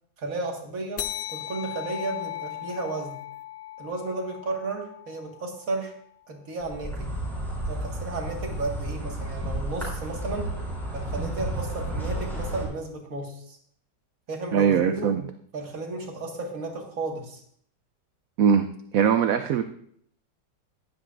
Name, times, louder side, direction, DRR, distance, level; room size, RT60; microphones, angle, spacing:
voice 1, 0.2-3.2 3.8-5.9 6.3-7.1 7.7-10.5 10.9-13.6 14.3-15.1 15.5-17.4, right 3 dB, 55° right, 1 dB, 2.1 m, -33 dB
sound 1, 1.0-5.9, left 14 dB, 70° left, 0.9 m, -37 dB
Insect, 6.6-12.6, right 1 dB, ahead, 3.8 m, -32 dB
voice 2, 14.5-15.2 18.4-18.7 18.9-19.6, right 7 dB, 70° right, 9 dB, 0.8 m, -21 dB
15.5 x 11.0 x 2.5 m, 0.64 s
omnidirectional pair, 1.9 m